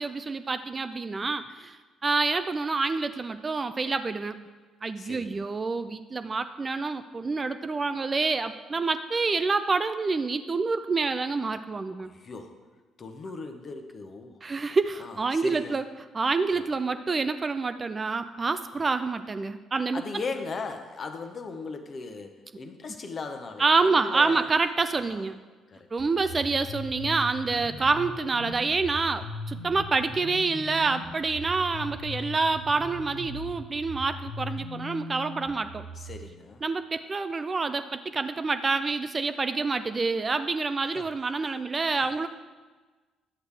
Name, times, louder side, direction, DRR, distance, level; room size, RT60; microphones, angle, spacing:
voice 1, 0.0-4.4 4.8-12.1 14.4-15.8 16.1-20.0 23.6-25.4 25.9-35.8 36.6-42.3, right 4 dB, 30° right, 11 dB, 0.4 m, -27 dB
voice 2, 5.0-5.4 12.0-12.6 13.0-14.4 15.0-15.8 16.5-16.7 19.9-24.5 25.0-25.3 25.7-25.9 26.3-26.5 35.9-36.6 40.8-41.1 41.4-41.6 42.0-42.1, left 4 dB, 40° left, 6 dB, 1.0 m, -38 dB
sound 1, 26.0-36.1, left 2 dB, 80° right, 1.4 m, -39 dB
11.0 x 8.0 x 3.4 m, 1.3 s
figure-of-eight pair, 45°, 0 cm